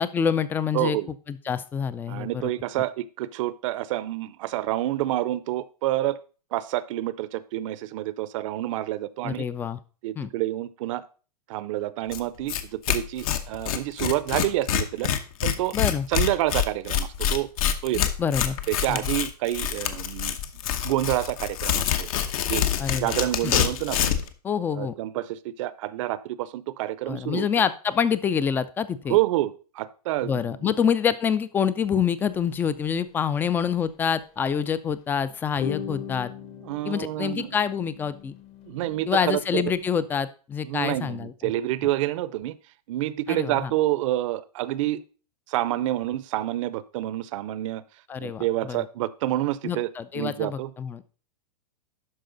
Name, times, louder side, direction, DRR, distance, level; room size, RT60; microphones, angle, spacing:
voice 1, 0.0-1.0 1.3-2.5 9.2-9.8 10.2-10.3 15.7-16.1 18.0-18.6 18.9-19.0 22.8-23.2 23.4-23.5 24.4-25.0 27.1-29.2 30.2-36.3 36.8-38.4 39.1-41.5 43.3-43.7 48.1-48.9 49.6-51.0, left 7 dB, 10° left, 16 dB, 0.3 m, -26 dB
voice 2, 0.7-1.1 2.1-6.2 6.5-9.5 10.0-11.0 11.5-15.1 15.4-15.7 16.1-17.5 17.8-18.1 18.7-20.4 20.8-22.1 22.5-22.6 23.0-24.1 24.7-27.5 29.1-30.7 36.6-37.5 38.7-39.6 40.7-42.6 42.9-45.0 45.5-47.8 48.2-49.9 50.1-50.7, right 15 dB, 55° right, 17 dB, 0.6 m, -28 dB
Tearing, 12.1-12.2 12.5-12.6 12.9-24.3, left 9 dB, 60° left, 1.0 m, -26 dB
sound 1, 32.4-32.5 32.9-33.1 33.9-34.2 35.6-39.9, left 6 dB, 30° left, 0.9 m, -39 dB
12.0 x 4.7 x 3.9 m, 0.37 s
hypercardioid pair, 135°, 20 cm